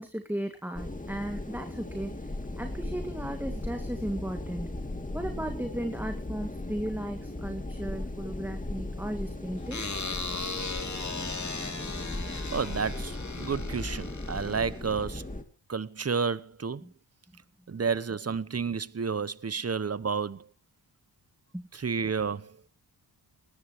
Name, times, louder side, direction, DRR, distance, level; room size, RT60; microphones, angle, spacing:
voice 1, 0.0-4.7 5.1-10.0 16.8-16.9 21.5-21.7, right 1 dB, 5° right, 2.1 m, -36 dB
sound 1, 0.7-15.4, left 2 dB, 20° left, 2.7 m, -37 dB
sound 2, 9.7-15.0, left 4 dB, 40° left, 2.9 m, -37 dB
voice 2, 12.5-15.3 15.7-16.8 17.7-20.5 21.7-22.6, right 5 dB, 35° right, 0.9 m, -31 dB
20.0 x 19.0 x 3.1 m
wide cardioid pair, 95°, 42 cm